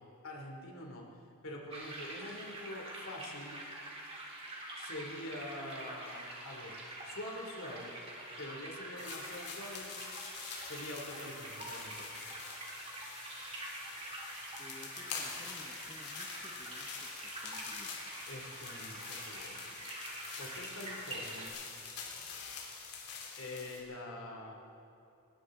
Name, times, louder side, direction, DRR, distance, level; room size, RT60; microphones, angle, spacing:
voice 1, 0.2-1.0 1.4-3.6 4.8-6.8 7.0-7.9 8.4-9.9 10.6-12.1 18.3-19.9 20.4-21.5 23.4-24.5, left 1 dB, 65° left, 1 dB, 2.9 m, -45 dB
sound 1, 1.7-21.5, right 1 dB, 25° right, 2.5 m, -46 dB
sound 2, 9.0-23.8, left 5 dB, 90° left, 3.4 m, -46 dB
voice 2, 14.6-18.2, left 1 dB, 20° left, 0 dB, 0.9 m, -56 dB
20.0 x 19.0 x 3.8 m, 2.7 s
head